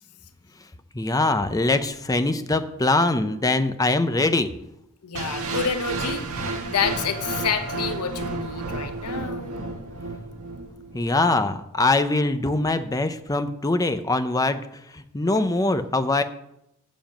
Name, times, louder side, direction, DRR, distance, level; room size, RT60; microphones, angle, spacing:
voice 1, 0.9-4.5 10.9-14.6 14.9-16.2, left 2 dB, 15° left, 9 dB, 0.6 m, -22 dB
voice 2, 5.0-6.3 6.7-9.6, left 6 dB, 85° left, 7 dB, 1.0 m, -28 dB
sound 1, 5.1-11.1, right 3 dB, 70° right, 1.5 m, -31 dB
7.2 x 7.2 x 7.6 m, 0.81 s
head